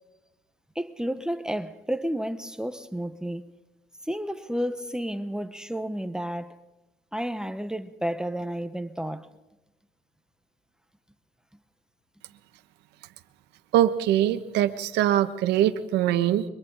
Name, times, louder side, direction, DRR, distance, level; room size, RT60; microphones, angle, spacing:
voice 1, 0.7-3.5 4.0-6.6 7.1-9.3, equal, 5° right, 1.1 m, -31 dB
voice 2, 13.7-16.4, right 12 dB, 85° right, 1.3 m, -22 dB
30.0 x 24.0 x 4.0 m
cardioid pair, 110°, 17 cm